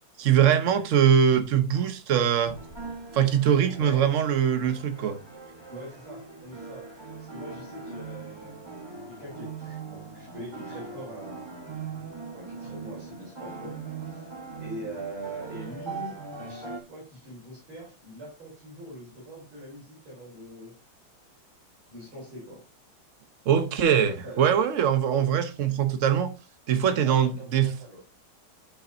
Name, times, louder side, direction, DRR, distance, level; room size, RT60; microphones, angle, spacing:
voice 1, 0.2-2.5 3.1-5.2 23.5-26.3 26.7-27.7, right 8 dB, 60° right, 0.8 m, -22 dB
sound 1, 0.7-0.9 2.4-16.8, right 4 dB, 15° right, 0.9 m, -41 dB
voice 2, 5.7-6.9 7.2-8.7 9.1-11.5 12.3-14.3 14.6-20.7 21.9-22.6 24.2-24.5 26.8-28.0, right 1 dB, 80° right, 5.0 m, -42 dB
10.0 x 5.4 x 2.6 m
omnidirectional pair, 2.2 m